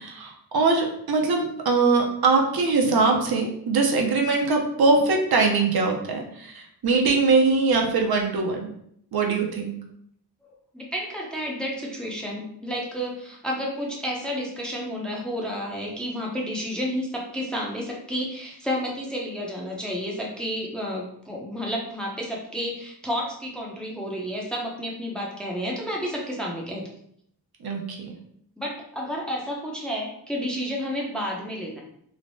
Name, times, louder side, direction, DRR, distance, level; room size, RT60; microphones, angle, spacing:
voice 1, 0.0-8.7 9.1-9.7 27.6-28.1, right 3 dB, 65° right, 1 dB, 0.6 m, -22 dB
voice 2, 10.7-26.8 28.6-31.8, equal, ahead, -2 dB, 0.5 m, -31 dB
3.2 x 2.1 x 2.6 m, 0.70 s
wide cardioid pair, 90°, 41 cm